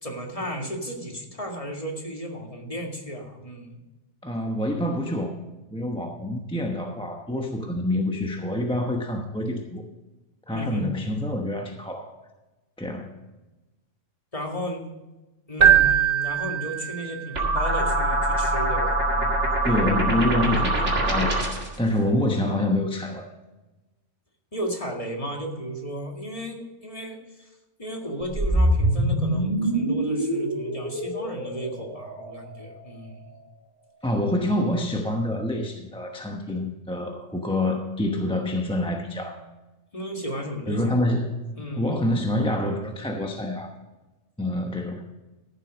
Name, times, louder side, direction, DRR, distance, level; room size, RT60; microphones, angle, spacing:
voice 1, 0.0-3.8 10.5-10.9 14.3-14.8 15.5-19.4 24.5-27.5 27.8-33.3 39.9-41.0 41.5-42.0, equal, 30° left, 1 dB, 2.0 m, -34 dB
voice 2, 4.2-5.4 5.7-9.8 10.5-12.1 12.8-13.1 19.6-21.4 21.8-23.3 34.0-39.4 40.7-41.4 41.8-43.7 44.4-45.1, left 1 dB, 5° left, 2 dB, 0.9 m, -26 dB
Keyboard (musical), 15.6-17.4, right 9 dB, 55° right, 1.4 m, -20 dB
sound 1, 17.3-21.7, right 1 dB, 80° right, 2.5 m, -24 dB
sound 2, 28.3-32.5, right 1 dB, 30° right, 1.8 m, -25 dB
14.5 x 7.7 x 5.1 m, 1.1 s
omnidirectional pair, 1.2 m